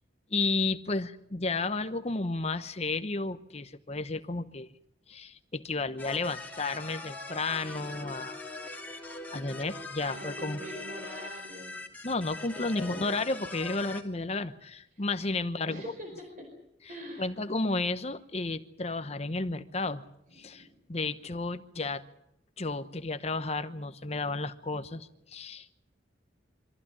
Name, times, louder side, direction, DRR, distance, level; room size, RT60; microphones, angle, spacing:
voice 1, 0.3-4.7 5.1-8.4 9.3-10.6 12.0-15.8 17.2-20.0 20.3-22.0 22.6-25.8, left 3 dB, 35° left, 11 dB, 1.0 m, -32 dB
sound 1, 6.0-14.0, left 2 dB, 10° left, 2.7 m, -42 dB
voice 2, 10.0-11.8 12.8-13.2 15.7-16.4 16.9-17.3 20.3-20.7, equal, 50° right, 2 dB, 4.7 m, -43 dB
25.0 x 14.5 x 9.9 m, 0.79 s
head